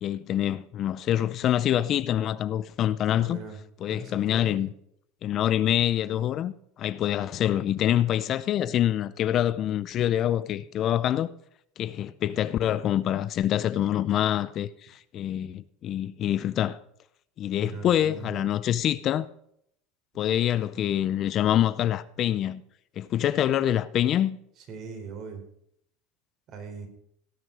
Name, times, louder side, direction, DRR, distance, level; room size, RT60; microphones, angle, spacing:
voice 1, 0.0-3.4 3.8-4.7 5.2-6.5 6.8-11.3 11.8-16.8 17.4-19.3 20.2-22.6 23.0-24.4, left 11 dB, 40° left, 0.5 m, -25 dB
voice 2, 3.2-3.6 3.9-4.6 17.6-18.5 24.6-25.4 26.5-26.9, right 5 dB, 45° right, 4.0 m, -40 dB
18.0 x 6.4 x 5.1 m
supercardioid pair, 125°, 0 cm